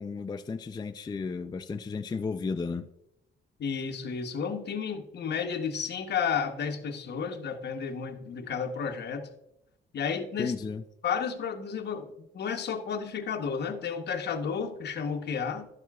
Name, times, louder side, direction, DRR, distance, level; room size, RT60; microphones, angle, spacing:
voice 1, 0.0-2.9 10.4-10.8, left 4 dB, 20° left, 8 dB, 0.4 m, -33 dB
voice 2, 3.6-9.3 9.9-10.5 11.0-15.7, left 6 dB, 60° left, 7 dB, 1.0 m, -32 dB
11.5 x 7.3 x 2.3 m, 0.81 s
cardioid pair, 90°, 20 cm